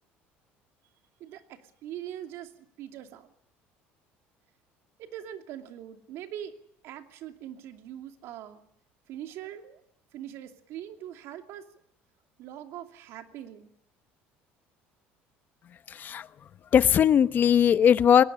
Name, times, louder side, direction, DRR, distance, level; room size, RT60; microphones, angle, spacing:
voice 1, 1.2-3.3 5.0-6.5 6.8-8.7 9.1-9.8 10.1-11.6 12.4-13.7, right 11 dB, 70° right, 6 dB, 2.6 m, -42 dB
voice 2, 15.9-16.3 16.7-18.2, left 8 dB, 40° left, 14 dB, 1.0 m, -19 dB
21.5 x 19.0 x 9.9 m, 0.71 s
cardioid pair, 120°, 5 cm